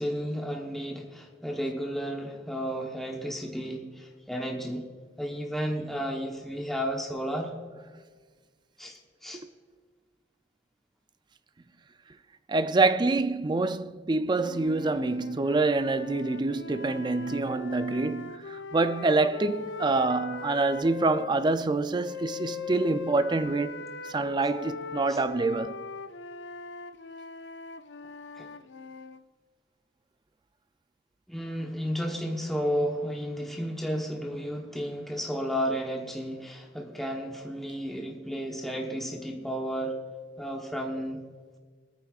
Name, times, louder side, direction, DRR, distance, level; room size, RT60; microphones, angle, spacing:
voice 1, 0.0-4.9 5.2-7.5 8.8-9.4 25.1-25.2 28.4-28.5 31.3-40.0 40.4-41.2, equal, ahead, 1.0 m, -32 dB
voice 2, 12.5-23.8 24.1-25.8, right 3 dB, 25° right, 0.4 m, -26 dB
sound 1, 14.4-21.3 22.0-29.2, left 5 dB, 80° left, 0.5 m, -40 dB
23.0 x 9.4 x 2.4 m
head